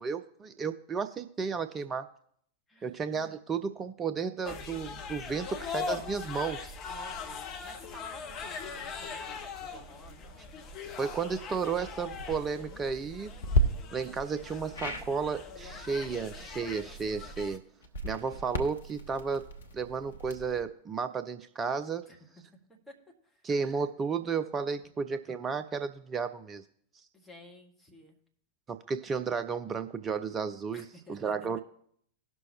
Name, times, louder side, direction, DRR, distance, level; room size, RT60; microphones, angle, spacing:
voice 1, 0.0-2.1 2.8-6.7 11.0-13.3 13.9-17.6 18.0-19.5 19.7-22.0 23.4-26.6 28.7-31.6, right 5 dB, 20° right, 10 dB, 0.5 m, -33 dB
voice 2, 2.7-3.0 6.9-10.3 22.1-22.2 22.7-22.9 23.2-23.4 27.1-28.2 30.7-31.6, left 1 dB, 5° left, -1 dB, 1.7 m, -52 dB
sound 1, 4.4-17.6, left 5 dB, 35° left, 0.8 m, -41 dB
sound 2, 12.1-12.4 13.4-13.6 14.7-15.1 17.8-20.6, equal, 65° left, 0.9 m, -32 dB
18.0 x 6.2 x 2.9 m, 0.64 s
figure-of-eight pair, 90°, 0 cm